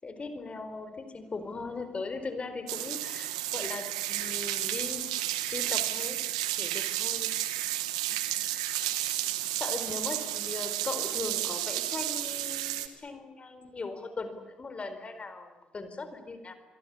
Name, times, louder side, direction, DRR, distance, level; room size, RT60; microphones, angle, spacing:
voice 1, 0.0-7.3 9.6-16.5, left 3 dB, 35° left, 9 dB, 4.5 m, -39 dB
sound 1, 2.7-12.9, right 14 dB, 90° right, 1.5 m, -32 dB
28.0 x 22.5 x 8.6 m, 1.1 s
hypercardioid pair, 50°, 3 cm